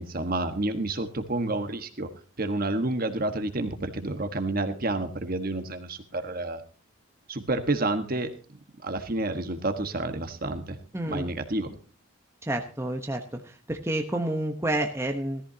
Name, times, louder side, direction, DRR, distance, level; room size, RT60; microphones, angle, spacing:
voice 1, 0.0-2.1 2.4-6.6 7.3-8.3 8.8-10.8 11.1-11.7, right 2 dB, 45° right, 7 dB, 1.4 m, -29 dB
voice 2, 10.9-11.3 12.4-13.2 13.7-15.4, right 1 dB, 15° right, 4 dB, 1.0 m, -29 dB
17.5 x 14.5 x 2.8 m, 0.37 s
head